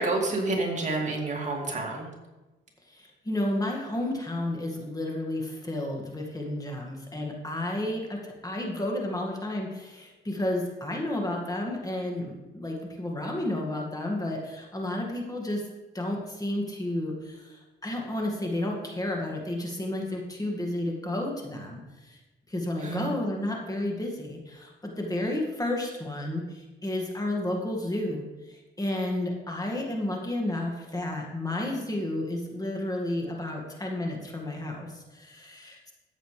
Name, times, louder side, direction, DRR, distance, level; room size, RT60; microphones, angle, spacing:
voice 1, 0.0-2.1 22.8-23.1, right 2 dB, 35° right, 0 dB, 2.4 m, -29 dB
voice 2, 2.9-15.7 15.9-22.2 22.5-28.2 28.5-35.9, left 1 dB, 20° left, 0 dB, 2.0 m, -32 dB
13.5 x 8.0 x 3.3 m, 1.1 s
cardioid pair, 90°, 20 cm